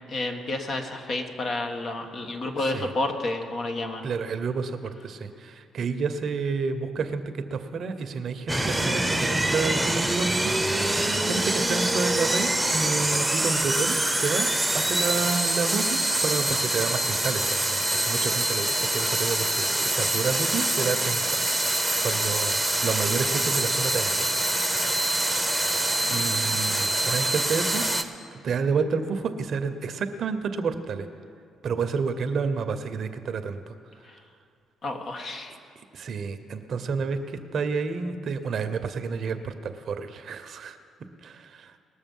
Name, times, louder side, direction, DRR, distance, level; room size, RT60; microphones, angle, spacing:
voice 1, 0.1-4.1 26.0-26.5 34.0-34.2 34.8-35.6, left 2 dB, 55° left, 4 dB, 1.4 m, -31 dB
voice 2, 4.0-10.9 11.2-21.2 21.6-21.7 22.0-24.4 26.1-27.8 28.3-31.1 31.6-33.8 35.9-40.8 41.2-41.8, right 5 dB, 60° right, 9 dB, 0.8 m, -30 dB
sound 1, 8.5-28.0, right 1 dB, 5° right, 0.9 m, -25 dB
20.0 x 6.7 x 5.5 m, 2.4 s
supercardioid pair, 70°, 0 cm